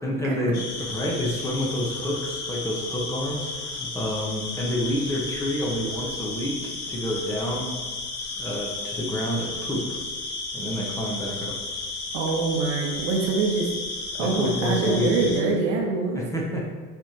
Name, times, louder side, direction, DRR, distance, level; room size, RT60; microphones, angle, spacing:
voice 1, 0.0-7.7 8.4-10.0 10.5-11.6 14.2-15.5 16.1-16.7, equal, 5° left, -3 dB, 1.4 m, -28 dB
sound 1, 0.5-15.4, left 3 dB, 35° left, 1.4 m, -33 dB
voice 2, 12.1-13.7 14.2-16.2, right 4 dB, 50° right, 0 dB, 1.3 m, -24 dB
7.4 x 3.6 x 4.5 m, 1.4 s
figure-of-eight pair, 80°, 47 cm